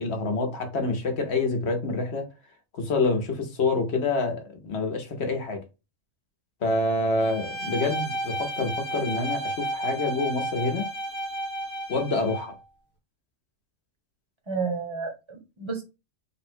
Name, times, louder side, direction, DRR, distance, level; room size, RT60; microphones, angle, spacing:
voice 1, 0.0-2.3 2.7-5.6 6.6-10.9 11.9-12.6, left 3 dB, 60° left, 1.1 m, -27 dB
Bowed string instrument, 7.2-12.5, right 1 dB, 25° left, 1.2 m, -32 dB
voice 2, 14.5-15.8, right 5 dB, 25° right, 0.8 m, -31 dB
3.5 x 2.2 x 4.3 m
omnidirectional pair, 1.3 m